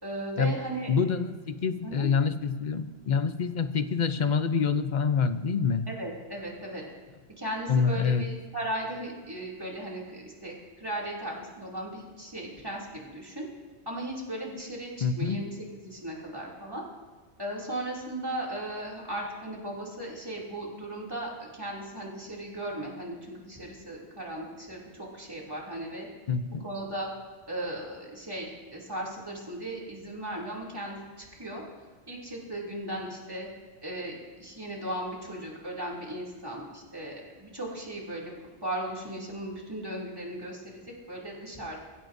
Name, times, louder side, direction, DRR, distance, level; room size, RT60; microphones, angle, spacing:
voice 1, 0.0-0.9 1.8-2.1 5.9-6.8 7.4-13.5 13.8-16.8 17.4-26.1 26.6-27.1 27.5-31.6 32.1-33.5 33.8-38.3 38.6-41.8, right 1 dB, 20° right, -4 dB, 2.9 m, -37 dB
voice 2, 0.9-5.9 7.7-8.3 15.0-15.5 26.3-26.7, left 6 dB, 45° left, 10 dB, 0.8 m, -26 dB
22.5 x 15.5 x 2.7 m, 1.3 s
omnidirectional pair, 1.2 m